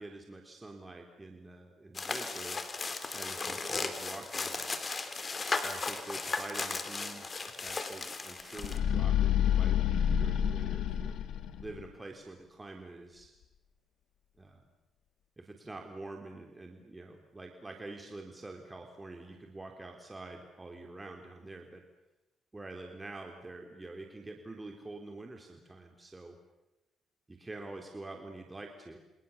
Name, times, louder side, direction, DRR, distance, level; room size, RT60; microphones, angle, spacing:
voice 1, 0.0-2.6 3.1-4.8 5.6-11.2 11.6-13.3 14.4-14.6 15.4-21.8 22.5-26.4 27.3-29.0, right 2 dB, 20° right, 3 dB, 3.5 m, -46 dB
sound 1, 1.9-8.8, left 4 dB, 35° left, 3.2 m, -36 dB
sound 2, 8.6-11.9, left 9 dB, 80° left, 2.5 m, -28 dB
28.5 x 27.5 x 7.2 m, 1.0 s
cardioid pair, 90°, 0 cm